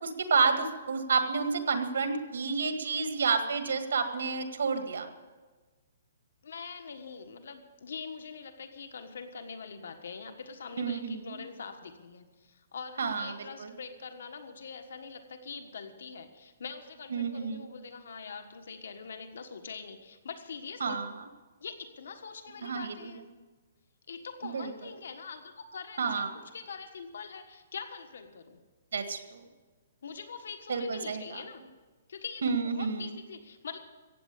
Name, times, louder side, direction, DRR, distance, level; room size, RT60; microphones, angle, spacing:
voice 1, 0.0-5.1 10.8-11.4 13.0-13.3 13.6-13.7 17.1-17.7 20.8-21.2 22.6-23.0 24.4-24.7 26.0-26.3 28.9-29.4 30.7-31.4 32.4-33.1, right 5 dB, 85° right, 7 dB, 1.9 m, -30 dB
voice 2, 6.4-21.0 21.6-23.2 24.1-28.6 30.0-31.6 32.1-33.8, left 5 dB, 70° left, 7 dB, 1.5 m, -43 dB
15.5 x 8.8 x 8.8 m, 1.3 s
hypercardioid pair, 175°, 0 cm